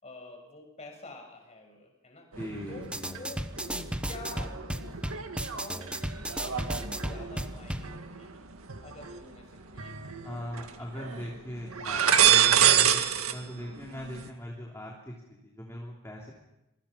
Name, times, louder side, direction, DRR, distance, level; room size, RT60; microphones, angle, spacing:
voice 1, 0.0-2.3 2.7-5.0 5.5-8.5 8.8-11.6, left 2 dB, 30° left, 2 dB, 6.4 m, -48 dB
voice 2, 2.3-3.1 10.2-16.3, equal, 15° left, -1 dB, 3.4 m, -40 dB
sound 1, 2.3-3.2 3.6-9.2 9.7-10.7 11.0-11.2 11.7-13.3 13.6-14.3, right 9 dB, 90° right, 2.0 m, -27 dB
sound 2, 2.8-7.9, right 1 dB, 5° right, 1.0 m, -35 dB
26.5 x 24.0 x 5.9 m, 0.95 s
head